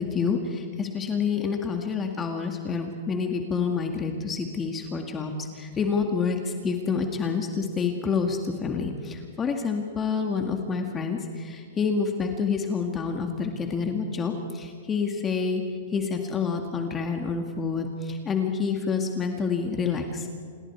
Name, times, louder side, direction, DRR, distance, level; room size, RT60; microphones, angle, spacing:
voice 1, 0.0-15.6 15.9-20.3, left 5 dB, 20° left, 4 dB, 2.0 m, -28 dB
28.0 x 20.0 x 4.7 m, 2.1 s
hypercardioid pair, 135°, 0 cm